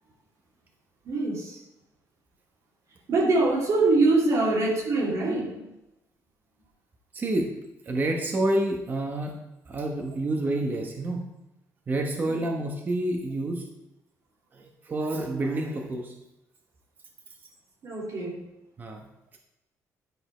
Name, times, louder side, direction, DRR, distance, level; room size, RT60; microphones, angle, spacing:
voice 1, 1.0-1.6 3.1-5.7 12.2-12.4 17.8-18.4, right 3 dB, 55° right, -2 dB, 2.5 m, -24 dB
voice 2, 7.1-7.5 7.8-9.4 9.7-11.2 11.9-13.6 14.5-16.1 18.8-19.1, right 1 dB, 30° right, 2 dB, 1.1 m, -28 dB
10.5 x 5.1 x 4.4 m, 0.92 s
cardioid pair, 135°, 6 cm